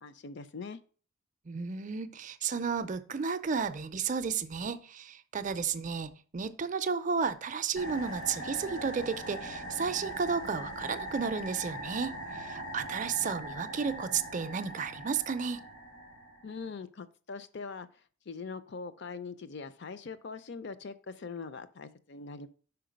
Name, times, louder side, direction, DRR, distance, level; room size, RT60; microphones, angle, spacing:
voice 1, 0.0-0.8 16.4-22.5, left 4 dB, 55° left, 0.5 m, -42 dB
voice 2, 1.5-15.6, right 5 dB, 35° right, 0.4 m, -33 dB
sound 1, 7.8-16.6, right 1 dB, 80° left, 3.1 m, -41 dB
5.7 x 4.6 x 5.1 m
head